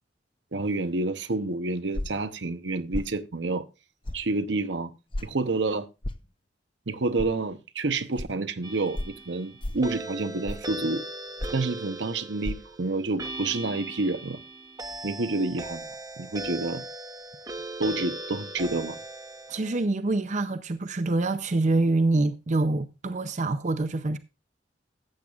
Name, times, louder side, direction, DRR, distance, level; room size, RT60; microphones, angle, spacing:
voice 1, 0.5-3.6 4.1-4.9 5.2-5.9 6.9-11.0 11.5-14.4 15.0-15.9 16.2-16.8 17.8-19.0, right 3 dB, 80° right, 0.9 m, -29 dB
sound 1, 1.9-2.3 2.9-3.1 4.1-4.2 5.1-5.3 6.0-6.3 7.2-7.3 8.2-8.3 8.9-9.2 9.6-9.9 10.5-10.7 11.4-11.7 12.4-12.6, left 1 dB, 30° left, 0.6 m, -32 dB
sound 2, 8.6-19.9, right 2 dB, 20° right, 0.9 m, -39 dB
voice 2, 19.5-24.2, right 2 dB, 40° right, 0.6 m, -25 dB
14.5 x 8.6 x 2.4 m
head